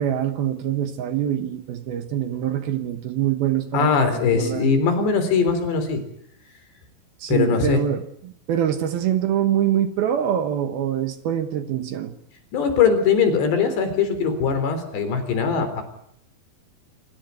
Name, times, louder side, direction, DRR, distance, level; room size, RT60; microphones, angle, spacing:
voice 1, 0.0-3.9 4.3-4.7 7.2-12.1, right 10 dB, 70° right, 9 dB, 2.8 m, -24 dB
voice 2, 3.7-6.0 7.3-7.8 12.5-15.8, left 5 dB, 70° left, 9 dB, 6.0 m, -21 dB
27.0 x 17.0 x 9.6 m, 0.73 s
omnidirectional pair, 5.1 m